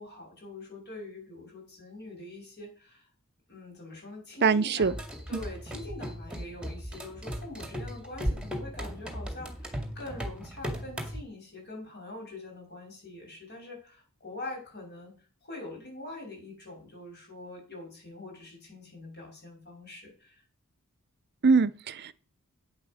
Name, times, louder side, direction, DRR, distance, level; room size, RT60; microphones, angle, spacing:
voice 1, 0.0-3.0 3.5-5.0 5.3-15.1 15.4-20.3, left 2 dB, 50° left, 7.0 m, -44 dB
voice 2, 4.4-4.9 5.3-5.4 21.4-22.1, right 4 dB, 50° right, 0.6 m, -23 dB
sound 1, 4.8-11.2, equal, 5° right, 2.1 m, -37 dB
8.9 x 8.2 x 6.4 m
head